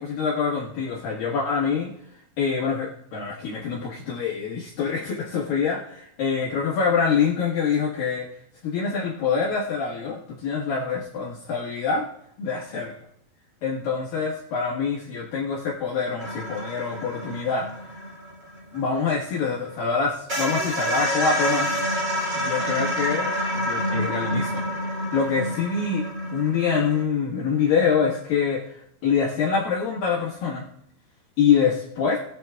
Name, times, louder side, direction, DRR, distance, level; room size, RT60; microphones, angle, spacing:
voice 1, 0.0-1.9 2.4-8.3 8.6-12.1 12.4-13.0 13.6-17.9 18.7-21.7 22.4-24.6 25.1-26.0 26.3-30.6 31.4-32.2, left 6 dB, 65° left, -4 dB, 2.8 m, -25 dB
sound 1, 16.2-19.6 19.9-20.0 20.3-27.0, equal, 20° right, 2.7 m, -28 dB
20.5 x 7.6 x 2.3 m, 0.73 s
omnidirectional pair, 5.0 m